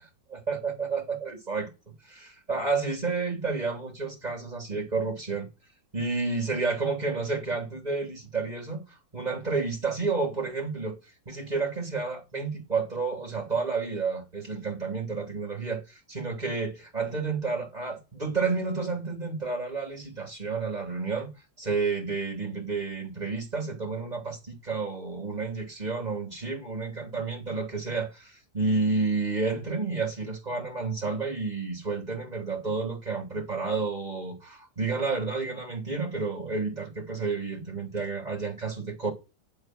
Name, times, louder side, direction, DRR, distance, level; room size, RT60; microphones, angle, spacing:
voice 1, 0.3-1.7 2.0-5.5 5.9-11.0 11.2-21.3 21.6-39.1, right 4 dB, 25° right, 3.1 m, -30 dB
10.5 x 7.5 x 6.1 m
omnidirectional pair, 1.9 m